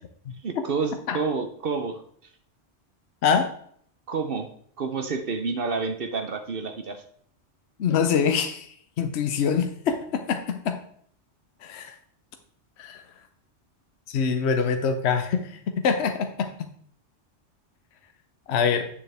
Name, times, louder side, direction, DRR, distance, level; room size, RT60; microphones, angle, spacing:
voice 1, 0.4-2.0 4.1-4.5 4.8-7.0, right 4 dB, 55° right, 7 dB, 0.9 m, -29 dB
voice 2, 7.8-10.8 11.6-11.9 12.8-13.0 14.1-16.5 18.5-18.9, left 6 dB, 65° left, 7 dB, 1.0 m, -25 dB
9.1 x 7.1 x 3.3 m, 0.63 s
omnidirectional pair, 1.2 m